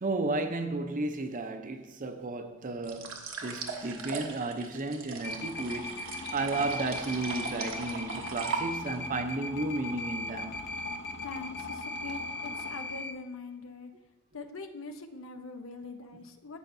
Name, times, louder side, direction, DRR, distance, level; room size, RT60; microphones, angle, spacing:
voice 1, 0.0-10.6, right 2 dB, 40° right, 0.6 m, -33 dB
sound 1, 2.8-9.0, right 5 dB, 85° right, 1.3 m, -39 dB
sound 2, 5.2-13.1, left 2 dB, 55° left, 0.8 m, -38 dB
voice 2, 11.2-13.9 14.3-16.6, left 3 dB, 85° left, 0.8 m, -43 dB
16.5 x 5.7 x 2.7 m
head